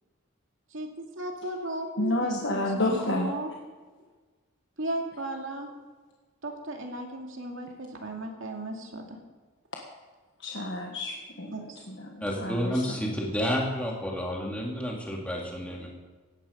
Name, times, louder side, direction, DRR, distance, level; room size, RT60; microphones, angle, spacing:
voice 1, 0.7-3.5 4.8-5.7 6.4-9.2 11.4-11.6, right 1 dB, 70° right, 2 dB, 2.4 m, -36 dB
voice 2, 2.0-3.3 10.4-11.5 11.9-12.8, left 1 dB, 60° left, 0 dB, 1.4 m, -30 dB
voice 3, 12.2-15.9, equal, 5° left, -2 dB, 2.6 m, -30 dB
17.0 x 11.5 x 5.2 m, 1.4 s
head